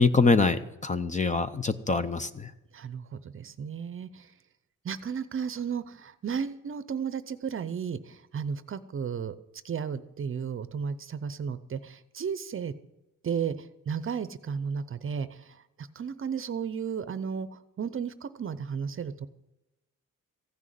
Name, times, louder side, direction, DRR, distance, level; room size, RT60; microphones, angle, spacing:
voice 1, 0.0-2.5, left 4 dB, 25° left, 11 dB, 0.6 m, -24 dB
voice 2, 2.7-4.3 4.8-9.3 9.6-12.7 13.2-19.3, right 7 dB, 40° right, 14 dB, 0.7 m, -34 dB
15.5 x 6.3 x 9.1 m, 0.96 s
cardioid pair, 130°, 32 cm